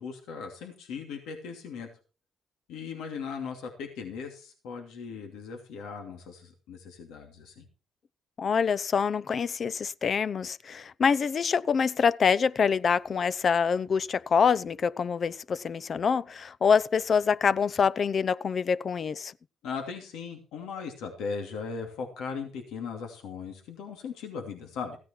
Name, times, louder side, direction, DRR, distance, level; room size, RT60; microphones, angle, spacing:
voice 1, 0.0-1.9 2.7-7.6 19.6-25.0, left 5 dB, 90° left, 2.7 m, -38 dB
voice 2, 8.4-19.3, left 6 dB, 50° left, 0.6 m, -25 dB
15.5 x 9.5 x 4.5 m
cardioid pair, 90°, 0 cm